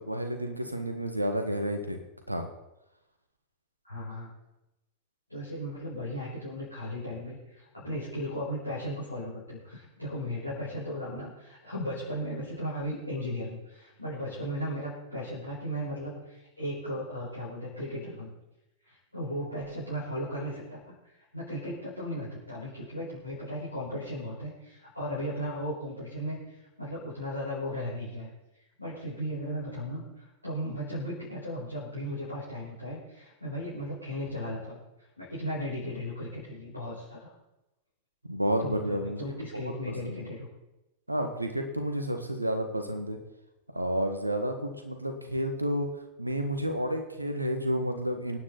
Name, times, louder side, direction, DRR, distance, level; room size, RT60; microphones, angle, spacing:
voice 1, 0.0-2.0 2.3-2.5 38.3-40.2 41.1-43.2 43.7-45.9 46.2-48.4, equal, 85° right, 6 dB, 1.8 m, -31 dB
voice 2, 3.8-4.3 5.3-18.3 18.8-28.3 28.8-34.8 35.2-37.3 38.6-40.5, equal, 85° left, -9 dB, 5.4 m, -36 dB
24.0 x 9.7 x 4.2 m, 0.93 s
figure-of-eight pair, 90°, 0 cm